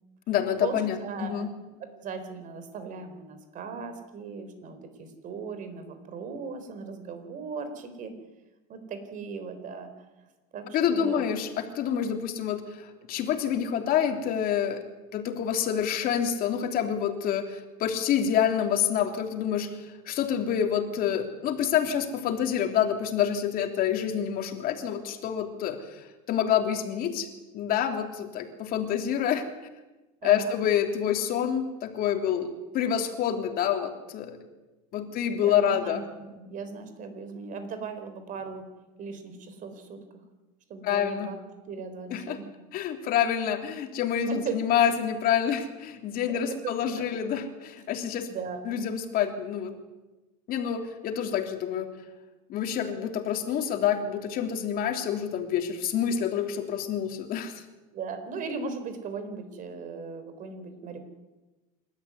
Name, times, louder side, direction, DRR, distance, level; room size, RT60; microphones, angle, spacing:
voice 1, 0.3-1.5 10.7-14.8 15.1-27.3 27.5-29.4 30.2-34.4 34.9-36.0 40.8-41.3 42.1-42.4 42.7-48.3 48.6-49.7 50.5-51.9 52.5-57.6, left 9 dB, 50° left, 5 dB, 3.2 m, -27 dB
voice 2, 1.0-1.5 2.0-8.1 8.7-9.9 10.5-11.3 30.2-30.5 35.3-38.6 39.0-40.0 40.7-41.4 41.7-42.5 44.3-44.6 46.3-47.0 48.2-48.6 57.9-61.0, right 5 dB, 45° right, 8 dB, 4.2 m, -38 dB
27.0 x 13.0 x 9.7 m, 1.1 s
supercardioid pair, 115°, 19 cm